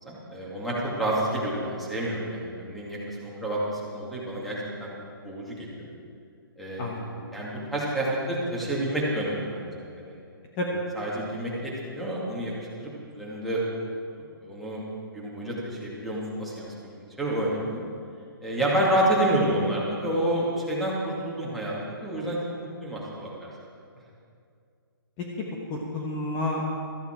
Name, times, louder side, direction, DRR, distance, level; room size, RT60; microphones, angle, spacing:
voice 1, 0.0-5.9 6.6-6.9 7.3-10.1 10.9-12.5 12.8-13.6 14.4-14.8 15.1-16.7 17.0-17.8 18.4-23.5, right 1 dB, ahead, -6 dB, 2.3 m, -29 dB
voice 2, 6.8-7.2 10.6-10.8 25.4-26.7, left 1 dB, 20° left, -3 dB, 1.3 m, -30 dB
16.0 x 14.0 x 4.6 m, 2.3 s
hypercardioid pair, 160°, 13 cm